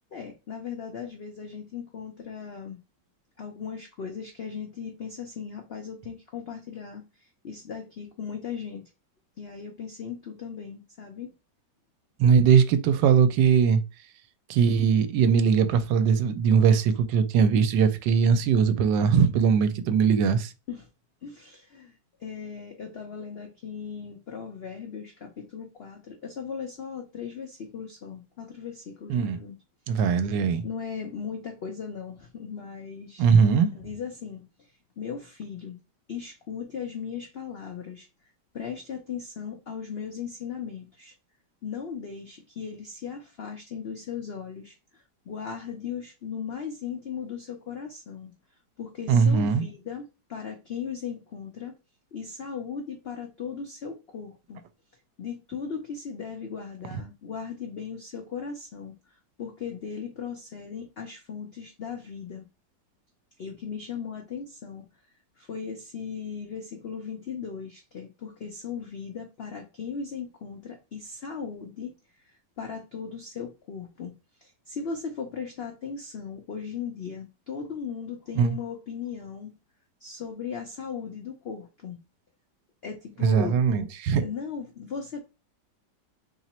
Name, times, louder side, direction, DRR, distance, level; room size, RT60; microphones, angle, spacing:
voice 1, 0.1-2.8 3.4-8.8 9.4-11.3 20.7-20.9 21.2-29.6 29.9-30.2 30.6-33.3 33.7-35.8 36.1-38.1 38.5-41.1 41.6-48.3 48.8-51.7 52.1-54.6 55.2-62.4 63.4-64.9 65.4-71.9 72.6-74.1 74.4-79.5 80.0-82.0 82.8-83.6 84.2-85.2, left 6 dB, 70° left, 0.5 m, -37 dB
voice 2, 12.2-13.8 14.5-20.5 29.1-29.4 29.9-30.6 33.2-33.7 49.1-49.6 78.4-78.6 83.2-84.2, right 6 dB, 80° right, 1.2 m, -20 dB
3.0 x 2.9 x 4.1 m
omnidirectional pair, 1.9 m